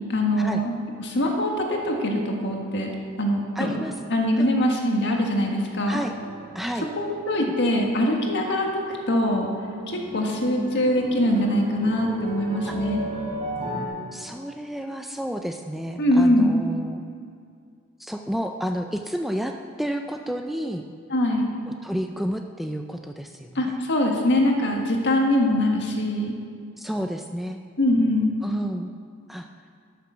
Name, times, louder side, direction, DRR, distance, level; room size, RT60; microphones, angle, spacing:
voice 1, 0.1-2.9 3.2-3.8 4.1-6.0 6.9-9.5 9.9-13.0 16.0-16.6 21.1-21.5 23.5-26.3 27.8-28.4, left 1 dB, 55° left, 1 dB, 1.6 m, -23 dB
voice 2, 3.6-3.9 4.4-4.5 5.9-6.1 6.5-6.9 7.4-7.5 12.7-12.8 14.1-17.0 18.0-20.8 21.8-23.8 26.8-27.6 28.4-28.9 29.3-29.5, equal, ahead, 4 dB, 0.3 m, -30 dB
sound 1, 5.7-8.0 8.3-8.9 9.2-13.9, right 1 dB, 30° right, 3.1 m, -36 dB
12.5 x 6.7 x 6.2 m, 2.3 s
head